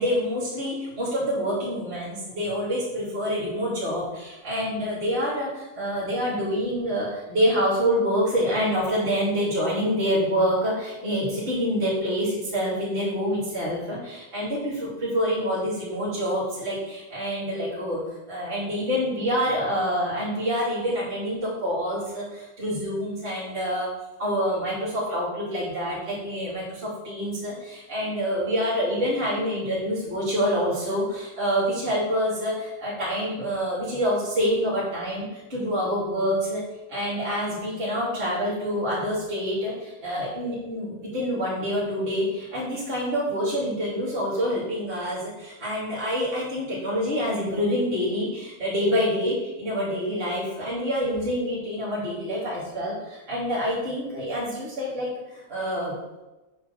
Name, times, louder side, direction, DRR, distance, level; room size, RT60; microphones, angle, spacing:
voice 1, 0.0-18.0 18.3-23.9 24.2-36.6 36.9-55.9, equal, 30° right, -8 dB, 2.9 m, -27 dB
8.4 x 3.2 x 6.3 m, 1.0 s
omnidirectional pair, 2.1 m